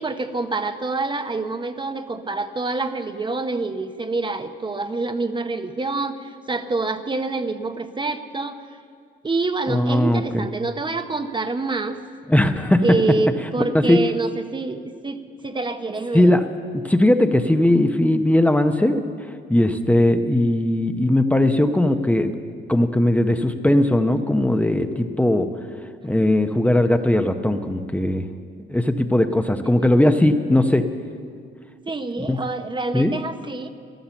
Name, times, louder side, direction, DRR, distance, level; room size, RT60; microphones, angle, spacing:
voice 1, 0.0-8.6 9.2-12.0 12.8-16.3 31.9-33.7, right 3 dB, 25° right, 9 dB, 0.8 m, -26 dB
voice 2, 9.7-10.5 12.3-12.8 13.7-14.0 16.1-16.4 16.7-19.0 19.5-22.3 22.7-25.5 26.0-28.3 28.7-30.9 32.2-32.4 32.9-33.2, left 1 dB, 5° left, 7 dB, 0.7 m, -19 dB
13.0 x 13.0 x 7.1 m, 2.1 s
cardioid pair, 90°, 20 cm